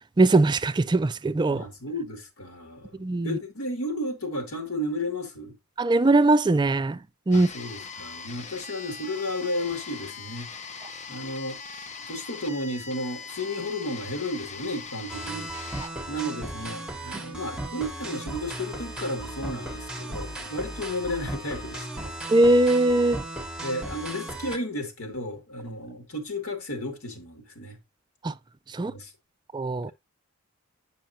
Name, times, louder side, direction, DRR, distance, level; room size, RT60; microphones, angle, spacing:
voice 1, 0.2-1.6 3.0-3.4 5.8-7.0 7.3-7.5 22.3-23.2 28.2-28.3 28.7-28.9 29.5-29.9, right 2 dB, 20° right, 0.4 m, -20 dB
voice 2, 1.5-3.0 3.2-5.5 7.3-10.5 11.1-15.5 16.1-22.2 23.6-27.8 28.8-29.1, left 1 dB, 75° left, 2.2 m, -33 dB
sound 1, 7.3-15.9, left 5 dB, 35° left, 0.6 m, -41 dB
sound 2, 15.1-24.6, right 1 dB, 5° right, 1.0 m, -36 dB
9.0 x 5.6 x 2.7 m
head